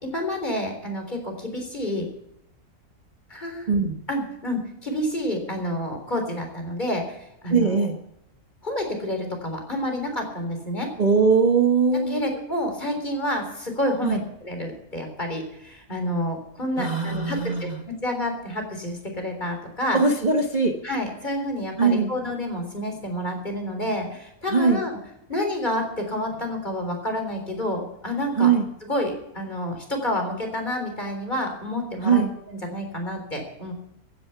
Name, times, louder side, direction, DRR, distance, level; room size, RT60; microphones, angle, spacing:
voice 1, 0.0-2.1 3.3-3.7 4.1-7.9 8.6-10.9 12.1-20.0 20.8-25.0 25.3-28.5 28.9-32.2 32.5-33.7, left 1 dB, 30° left, 3 dB, 4.0 m, -29 dB
voice 2, 3.7-4.0 7.5-8.0 11.0-12.2 14.0-14.2 16.8-17.8 19.9-20.8 21.8-22.1 24.5-24.8 28.4-28.7 32.0-32.3, right 5 dB, 30° right, 4 dB, 1.1 m, -20 dB
15.5 x 10.5 x 5.8 m, 0.81 s
omnidirectional pair, 1.5 m